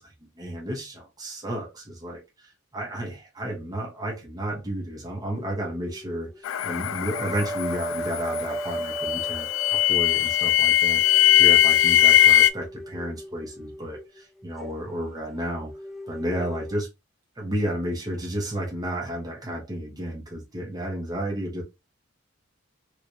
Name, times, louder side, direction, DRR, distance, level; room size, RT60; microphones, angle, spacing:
voice 1, 0.0-15.7 16.1-16.9 17.4-21.6, right 1 dB, 20° right, 1.0 m, -32 dB
sound 1, 5.3-6.5 6.8-16.7, right 1 dB, ahead, 0.4 m, -37 dB
sound 2, 6.4-12.5, left 12 dB, 75° left, 0.3 m, -20 dB
3.1 x 3.0 x 2.6 m
head